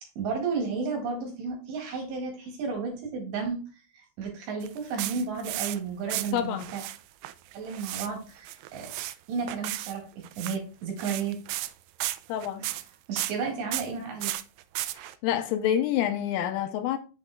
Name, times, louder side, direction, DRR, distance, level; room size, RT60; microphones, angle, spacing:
voice 1, 0.2-3.6 3.9-6.8 7.5-8.9 9.3-11.4 12.6-12.8 13.1-14.3 15.0-15.1, right 5 dB, 65° right, 3.9 m, -33 dB
sound 1, 4.6-5.8 6.1-7.0 7.2-8.1 8.4-9.2 9.5-9.9 10.2-10.6 11.0-11.7 12.0-12.9 13.2-13.3 13.7-13.9 14.2-15.1, right 16 dB, 85° right, 2.8 m, -34 dB
voice 2, 6.3-6.7 12.3-12.6 15.2-17.0, left 10 dB, 85° left, 3.2 m, -27 dB
8.0 x 7.6 x 2.4 m
omnidirectional pair, 6.0 m